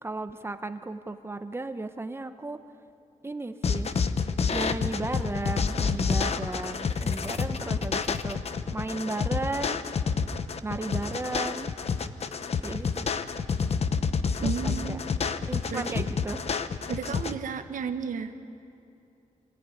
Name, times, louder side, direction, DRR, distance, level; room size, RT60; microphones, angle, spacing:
voice 1, 0.0-2.6 3.2-3.9 4.5-8.4 8.7-9.8 10.6-11.7 12.6-13.1 14.4-15.0 15.5-16.4, right 2 dB, 15° right, 8 dB, 0.9 m, -34 dB
sound 1, 3.6-17.3, left 5 dB, 50° left, 0.8 m, -28 dB
voice 2, 14.4-15.0 15.7-16.0 16.9-18.3, right 6 dB, 80° right, 7 dB, 1.4 m, -33 dB
26.0 x 16.5 x 9.8 m, 2.6 s
wide cardioid pair, 135°, 14 cm